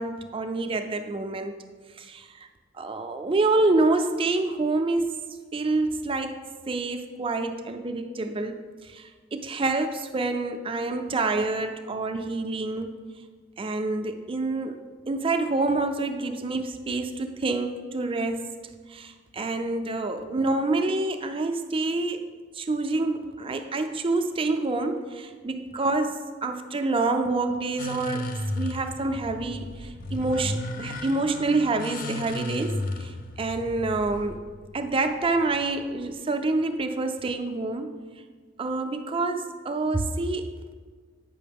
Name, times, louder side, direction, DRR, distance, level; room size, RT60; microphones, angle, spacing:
voice 1, 0.0-1.6 2.0-2.3 2.7-5.2 5.5-6.4 6.7-13.0 13.6-18.5 18.9-34.4 34.7-37.9 38.6-40.6, right 2 dB, 30° right, 7 dB, 0.5 m, -27 dB
sound 1, 27.8-36.1, left 1 dB, 45° left, 0.5 m, -35 dB
8.5 x 5.8 x 3.5 m, 1.5 s
head